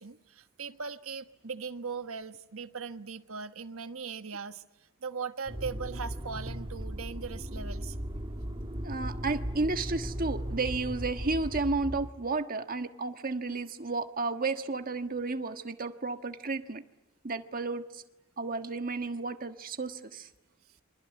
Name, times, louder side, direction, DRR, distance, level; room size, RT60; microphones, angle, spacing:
voice 1, 0.0-4.6 5.0-7.9, right 5 dB, 80° right, 1.3 m, -39 dB
Motor vehicle (road), 5.5-12.1, equal, 25° right, 1.7 m, -37 dB
voice 2, 8.8-16.8 17.2-18.0 18.4-20.3, right 3 dB, 45° right, 1.5 m, -32 dB
29.0 x 25.0 x 8.2 m
head